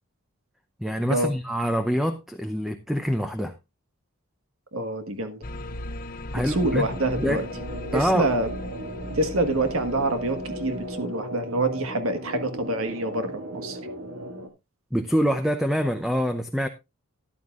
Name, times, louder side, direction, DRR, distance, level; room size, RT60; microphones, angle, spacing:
voice 1, 0.8-3.5 6.3-6.8 7.2-7.4 7.9-8.3 14.9-16.7, equal, ahead, 0.6 m, -25 dB
voice 2, 4.7-5.4 6.3-7.4 7.9-8.5 9.1-13.8, right 2 dB, 70° right, 1.4 m, -26 dB
sound 1, 5.4-11.1, left 1 dB, 40° left, 1.0 m, -38 dB
sound 2, 6.5-14.5, equal, 85° right, 2.4 m, -36 dB
13.5 x 11.5 x 2.4 m
head